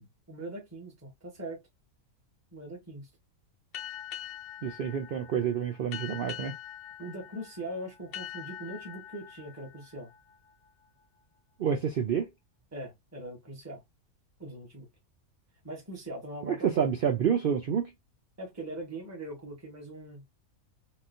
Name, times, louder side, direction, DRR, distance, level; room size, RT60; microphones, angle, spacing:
voice 1, 0.3-1.6 2.5-3.1 7.0-10.1 12.7-13.8 14.4-14.9 15.6-16.8 18.4-20.2, right 1 dB, 10° right, 1.2 m, -41 dB
sound 1, 3.7-11.0, left 11 dB, 70° left, 0.5 m, -44 dB
voice 2, 4.6-6.5 11.6-12.3 16.4-17.9, right 8 dB, 85° right, 0.4 m, -28 dB
3.7 x 2.3 x 2.5 m
omnidirectional pair, 1.5 m